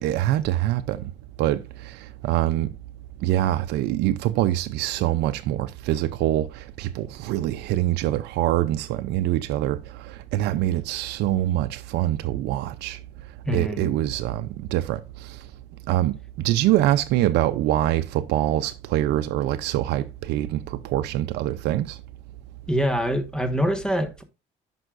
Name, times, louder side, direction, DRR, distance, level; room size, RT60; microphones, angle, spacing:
voice 1, 0.0-1.0 1.4-2.0 2.2-2.7 3.2-9.8 10.3-13.0 13.5-15.0 15.9-16.2 16.4-22.0, right 14 dB, 80° right, 0.5 m, -24 dB
voice 2, 13.4-13.9 22.7-24.2, equal, 5° left, 1.4 m, -25 dB
11.0 x 5.4 x 2.5 m
cardioid pair, 110°, 17 cm